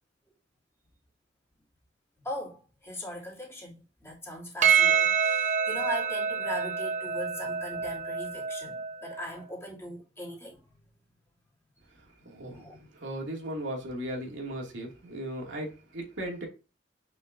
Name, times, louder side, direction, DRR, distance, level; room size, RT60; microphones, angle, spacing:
voice 1, 2.2-10.6 12.4-12.9, equal, 15° left, 2.9 m, -40 dB
Percussion, 4.6-9.2, right 7 dB, 40° right, 0.9 m, -27 dB
voice 2, 12.3-12.7 12.9-16.5, right 1 dB, 85° right, 2.5 m, -37 dB
7.5 x 5.7 x 2.7 m
head